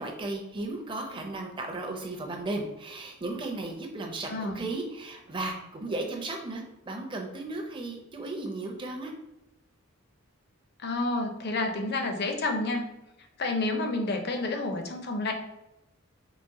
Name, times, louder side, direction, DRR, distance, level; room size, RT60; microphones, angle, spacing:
voice 1, 0.0-9.1, right 2 dB, 20° right, 1 dB, 0.5 m, -35 dB
voice 2, 4.3-4.6 10.8-12.9 13.4-15.3, left 2 dB, 45° left, 4 dB, 0.5 m, -29 dB
4.0 x 2.2 x 3.6 m, 0.92 s
head